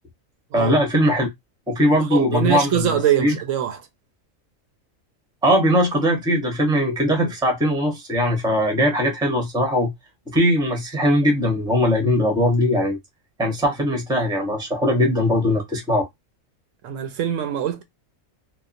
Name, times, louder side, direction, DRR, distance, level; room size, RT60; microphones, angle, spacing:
voice 1, 0.5-1.3 1.7-3.3 5.4-9.9 10.3-13.0 13.4-16.1, equal, 5° right, 0.7 m, -20 dB
voice 2, 2.1-3.8 16.8-17.8, right 10 dB, 75° right, 0.9 m, -23 dB
2.9 x 2.2 x 2.5 m
omnidirectional pair, 1.4 m